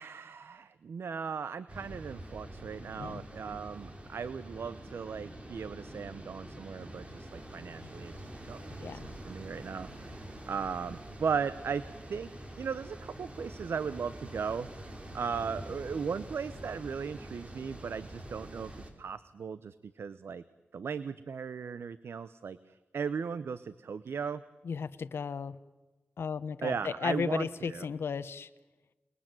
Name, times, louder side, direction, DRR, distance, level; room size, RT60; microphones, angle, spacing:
voice 1, 0.0-12.3 12.6-14.7 15.1-18.7 19.0-20.4 20.7-24.4 26.6-27.9, right 6 dB, 80° right, 14 dB, 0.9 m, -37 dB
sound 1, 1.7-18.9, right 1 dB, 30° right, 4.8 m, -46 dB
voice 2, 24.6-25.6 26.2-28.5, left 6 dB, 85° left, 12 dB, 1.2 m, -35 dB
28.5 x 21.5 x 9.1 m, 1.1 s
wide cardioid pair, 95°, 4 cm